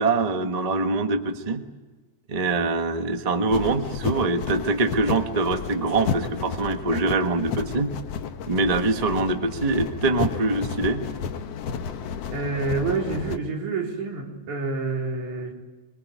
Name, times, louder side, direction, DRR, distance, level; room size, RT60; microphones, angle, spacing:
voice 1, 0.0-1.6 2.3-7.9 8.5-11.0, right 3 dB, 40° right, 6 dB, 0.5 m, -24 dB
sound 1, 3.5-13.4, left 6 dB, 65° left, 2.0 m, -32 dB
voice 2, 12.3-15.5, right 3 dB, 85° right, 0 dB, 5.2 m, -28 dB
25.0 x 20.5 x 9.4 m, 1.2 s
omnidirectional pair, 3.3 m